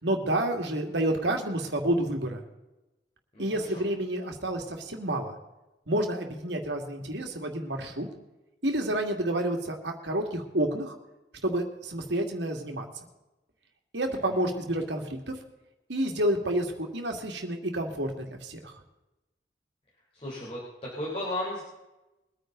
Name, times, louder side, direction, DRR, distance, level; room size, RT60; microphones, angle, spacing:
voice 1, 0.0-2.4 3.4-5.4 5.9-8.1 8.6-10.9 11.4-12.9 13.9-15.3 15.9-18.7, right 1 dB, 75° right, 3 dB, 2.4 m, -29 dB
voice 2, 3.3-3.8 14.1-14.4 20.1-21.6, left 1 dB, 30° left, -5 dB, 3.8 m, -35 dB
23.0 x 9.4 x 4.0 m, 1.0 s
head